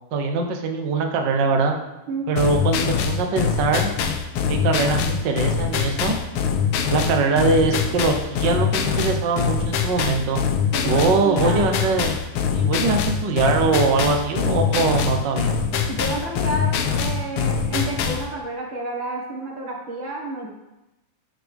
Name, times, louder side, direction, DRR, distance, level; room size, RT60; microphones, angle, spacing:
voice 1, 0.1-1.8 2.3-3.9 4.5-6.2 6.9-10.4 10.8-12.1 12.5-15.6, right 4 dB, 60° right, 3 dB, 1.1 m, -22 dB
sound 1, 2.4-18.3, left 6 dB, 70° left, 1.4 m, -23 dB
voice 2, 10.7-11.6 15.9-20.5, right 2 dB, 45° right, -2 dB, 2.1 m, -30 dB
12.5 x 9.6 x 3.5 m, 0.98 s
omnidirectional pair, 3.4 m